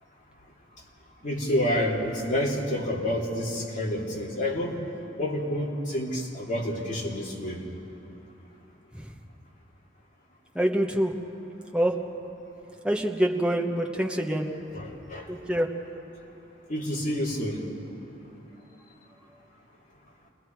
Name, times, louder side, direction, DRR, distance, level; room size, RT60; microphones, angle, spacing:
voice 1, 1.2-4.8 5.2-7.6 14.7-15.3 16.7-17.6, left 1 dB, 40° left, -4 dB, 3.1 m, -29 dB
voice 2, 10.5-11.1 11.7-12.0 12.8-14.5 15.3-15.7, right 1 dB, 5° right, 0 dB, 1.2 m, -25 dB
29.0 x 20.0 x 4.7 m, 3.0 s
head